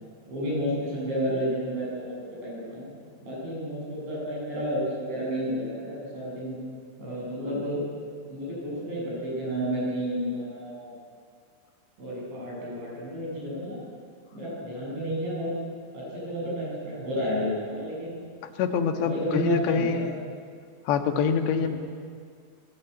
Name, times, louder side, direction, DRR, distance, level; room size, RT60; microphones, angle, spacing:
voice 1, 0.3-2.9 3.2-6.6 7.0-7.8 8.3-11.0 12.0-13.8 14.3-15.5 15.9-18.2 19.0-20.1 21.6-21.7, equal, 80° right, -4 dB, 9.9 m, -31 dB
voice 2, 18.6-20.1 20.9-21.7, left 7 dB, 75° left, 6 dB, 3.6 m, -25 dB
26.5 x 20.5 x 9.1 m, 2.1 s
omnidirectional pair, 5.1 m